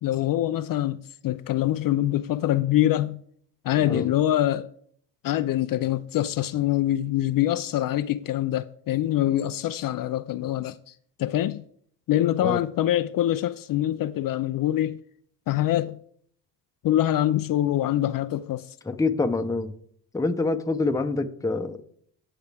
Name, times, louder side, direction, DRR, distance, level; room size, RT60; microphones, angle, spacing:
voice 1, 0.0-3.2 3.6-4.7 5.2-10.8 11.2-11.6 12.1-15.0 15.5-16.0 16.8-18.7, left 13 dB, 55° left, 0.5 m, -24 dB
voice 2, 3.8-4.1 12.4-12.6 18.8-19.7 20.1-21.8, left 3 dB, 10° left, 0.7 m, -26 dB
16.5 x 5.7 x 3.4 m
cardioid pair, 90°, 42 cm